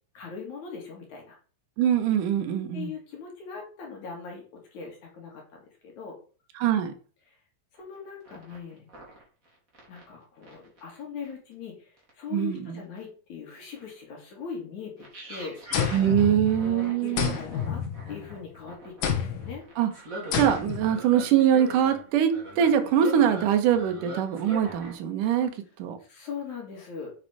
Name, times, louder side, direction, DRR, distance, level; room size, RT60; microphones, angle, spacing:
voice 1, 0.2-1.4 2.7-6.2 7.3-7.4 7.7-8.9 9.9-19.6 23.1-23.2 26.0-27.1, left 6 dB, 60° left, 3.3 m, -41 dB
voice 2, 1.8-2.9 6.6-6.9 12.3-12.8 15.9-17.4 19.8-19.9 20.3-25.5 25.8-26.0, right 9 dB, 70° right, 2.8 m, -23 dB
sound 1, 7.8-8.0 8.2-10.1 10.4-10.8 11.2-11.3 12.0-12.1 12.8-13.0 13.7-13.8 15.0-25.0 25.2-25.6, right 1 dB, 25° right, 3.2 m, -42 dB
sound 2, 15.7-16.8 17.2-18.4 19.0-19.6 20.3-20.9, left 8 dB, 75° left, 3.1 m, -29 dB
8.5 x 6.6 x 5.1 m
omnidirectional pair, 4.1 m